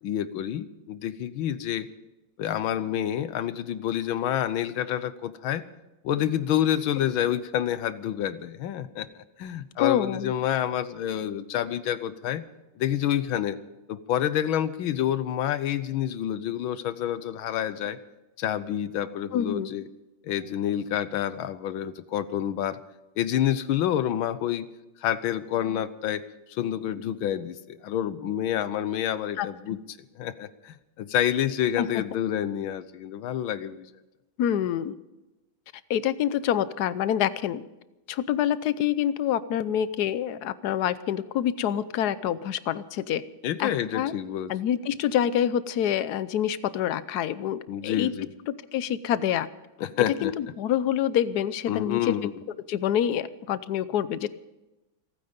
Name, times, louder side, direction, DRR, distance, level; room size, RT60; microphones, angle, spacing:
voice 1, 0.0-1.9 2.4-5.6 6.0-12.4 12.8-13.6 13.9-18.0 18.4-19.9 20.2-22.8 23.2-24.7 25.0-26.2 26.5-29.8 30.2-33.9 43.4-44.5 47.7-48.3 49.8-50.3 51.7-52.3, left 11 dB, 85° left, 14 dB, 1.6 m, -28 dB
voice 2, 9.8-10.3 19.3-19.7 29.4-29.8 31.8-32.0 34.4-34.9 35.9-37.6 38.1-43.2 43.6-44.1 44.5-48.1 48.5-49.5 50.1-52.1 52.7-54.3, left 10 dB, 65° left, 15 dB, 1.1 m, -26 dB
28.5 x 9.5 x 5.2 m, 1.0 s
omnidirectional pair, 2.2 m